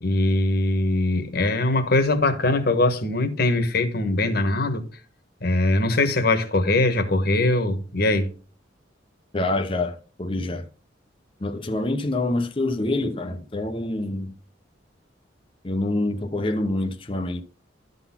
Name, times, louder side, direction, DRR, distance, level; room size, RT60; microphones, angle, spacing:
voice 1, 0.0-4.8 5.4-8.3, left 2 dB, 55° left, 1.4 m, -21 dB
voice 2, 9.3-10.6 11.4-14.3 15.6-17.4, left 2 dB, 30° left, 0.8 m, -26 dB
12.5 x 4.1 x 5.8 m
head